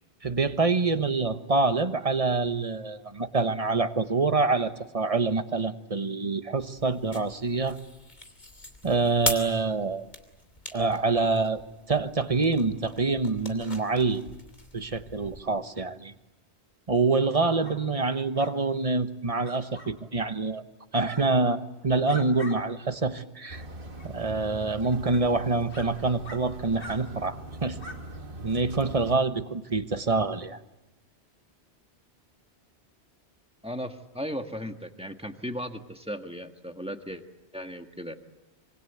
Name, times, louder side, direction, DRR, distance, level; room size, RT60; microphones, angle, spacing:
voice 1, 0.2-7.8 8.8-10.0 10.7-11.6 11.9-14.2 14.7-16.1 16.9-20.6 20.9-23.6 24.0-27.8 28.4-30.6, right 3 dB, 30° right, 10 dB, 1.2 m, -26 dB
sound 1, 6.6-15.4, left 2 dB, 40° left, 3.1 m, -40 dB
sound 2, 17.6-17.8 18.3-18.5 19.4-19.9 21.0-21.2 21.8-22.6 23.0-23.1 23.9-24.1 24.8-24.9 25.7-25.9 26.2-26.4 26.8-27.0 27.8-28.0, left 1 dB, 75° left, 4.4 m, -43 dB
sound 3, 23.5-29.2, right 1 dB, 55° right, 1.8 m, -42 dB
voice 2, 33.6-37.2 37.5-38.1, equal, 5° right, 5 dB, 1.5 m, -36 dB
26.0 x 25.0 x 8.1 m, 1.0 s
omnidirectional pair, 1.1 m